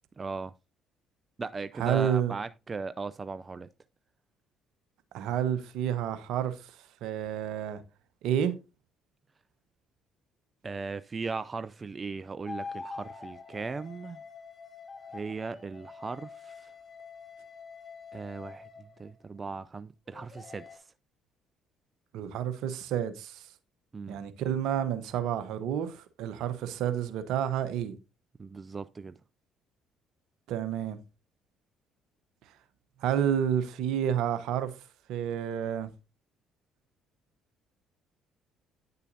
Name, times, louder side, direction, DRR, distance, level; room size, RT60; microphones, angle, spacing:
voice 1, 0.2-0.5 1.4-3.7 10.6-14.2 15.1-16.7 18.1-20.9 23.9-24.2 28.4-29.2, right 4 dB, 30° right, 0.4 m, -38 dB
voice 2, 1.8-2.3 5.1-6.7 7.0-7.8 8.2-8.5 22.1-23.4 24.1-28.0 30.5-31.0 33.0-34.7 35.1-35.9, right 9 dB, 70° right, 1.0 m, -30 dB
sound 1, 12.5-19.2 20.1-20.8, left 4 dB, 30° left, 2.8 m, -45 dB
9.7 x 6.8 x 2.7 m
hypercardioid pair, 55°, 0 cm